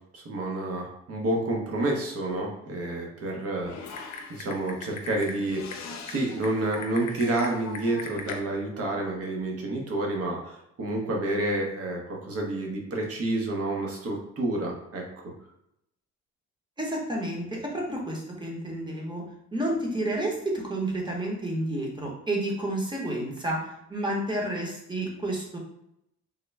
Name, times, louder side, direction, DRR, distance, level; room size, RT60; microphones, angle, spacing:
voice 1, 0.1-15.0, right 2 dB, 50° right, 0 dB, 1.0 m, -29 dB
Typing, 3.6-8.4, left 4 dB, 65° left, 0.6 m, -40 dB
voice 2, 16.8-19.2 19.5-25.6, right 1 dB, 15° right, -1 dB, 1.0 m, -30 dB
3.7 x 2.1 x 3.3 m, 0.81 s
cardioid pair, 90°, 30 cm